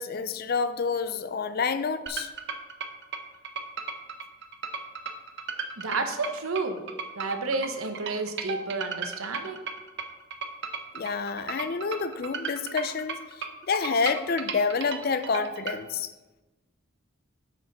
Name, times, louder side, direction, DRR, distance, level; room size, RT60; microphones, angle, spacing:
voice 1, 0.0-2.3 10.9-16.1, left 5 dB, 45° left, 11 dB, 0.4 m, -28 dB
sound 1, 2.1-15.8, right 5 dB, 55° right, 0.7 m, -35 dB
voice 2, 5.8-6.8 7.2-9.7, right 3 dB, 75° right, 6 dB, 1.0 m, -31 dB
9.0 x 6.4 x 4.0 m, 1.1 s
head